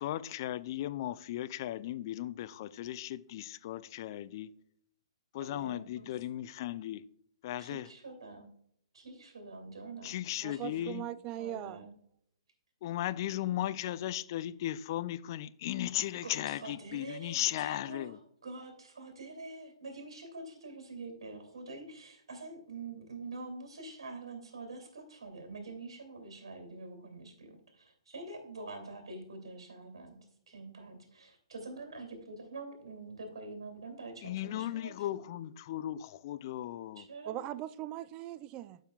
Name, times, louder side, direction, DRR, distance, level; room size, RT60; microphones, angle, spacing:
voice 1, 0.0-4.5 5.3-7.0 7.4-7.9 10.0-11.0 12.8-18.2 34.2-37.1, left 13 dB, 45° left, 0.5 m, -36 dB
voice 2, 5.4-6.1 7.6-8.5 8.9-10.2 10.5-10.8 11.4-11.9 15.9-30.2 30.5-35.2 37.0-37.6, right 3 dB, 65° right, 2.7 m, -46 dB
voice 3, 10.4-11.8 37.3-38.8, right 13 dB, 30° right, 0.4 m, -40 dB
12.0 x 5.6 x 2.4 m
figure-of-eight pair, 125°, 3 cm